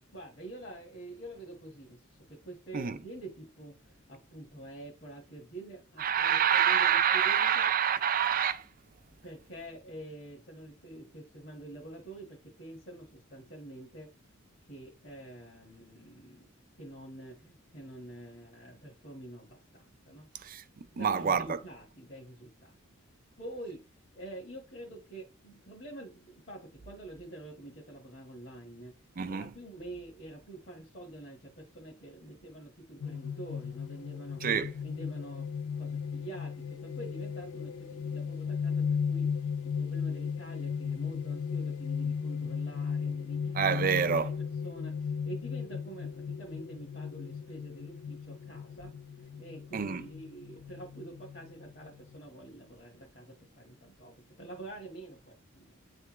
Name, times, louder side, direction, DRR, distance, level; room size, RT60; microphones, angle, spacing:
voice 1, 0.1-7.7 9.2-14.1 14.6-16.5 16.8-20.3 20.9-22.8 23.4-23.9 24.1-48.9 49.2-55.8, right 1 dB, 45° left, 1.5 m, -47 dB
voice 2, 6.0-8.7 20.4-21.6 29.2-29.5 34.4-34.7 43.6-44.3 49.7-50.0, right 8 dB, 40° right, 0.5 m, -27 dB
sound 1, 33.0-52.2, left 6 dB, 85° left, 0.3 m, -36 dB
9.2 x 3.3 x 3.1 m
head